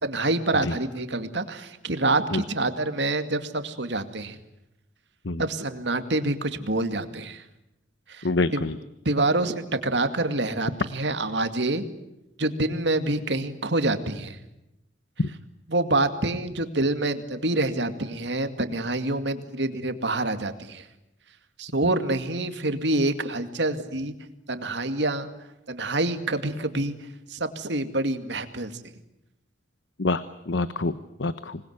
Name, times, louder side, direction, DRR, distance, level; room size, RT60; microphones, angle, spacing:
voice 1, 0.0-4.4 5.4-7.4 8.1-8.3 8.5-8.6 9.1-11.8 12.4-14.4 15.7-20.9 21.6-24.1 24.5-25.3 25.7-26.9 27.3-28.8, right 2 dB, 70° right, 8 dB, 2.3 m, -26 dB
voice 2, 8.2-8.7 15.2-15.3 30.0-31.6, left 2 dB, 75° left, 13 dB, 1.0 m, -26 dB
26.5 x 20.5 x 9.6 m, 0.89 s
head